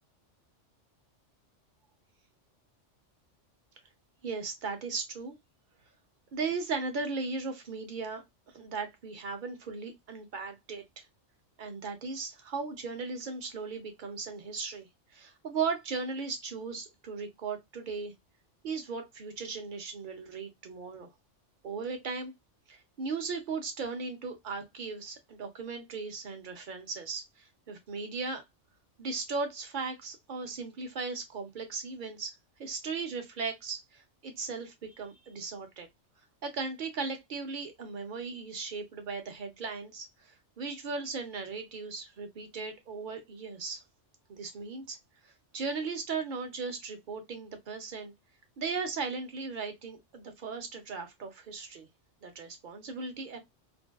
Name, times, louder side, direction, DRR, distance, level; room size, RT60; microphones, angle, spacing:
voice 1, 4.2-5.3 6.3-8.2 8.5-11.1 11.6-14.9 15.1-18.1 18.6-21.1 21.6-22.3 22.7-28.4 29.0-35.9 36.4-43.8 44.3-45.0 45.2-48.1 48.6-51.9 52.2-53.4, right 4 dB, 55° right, 0.6 m, -37 dB
2.6 x 2.2 x 2.2 m
omnidirectional pair, 1.2 m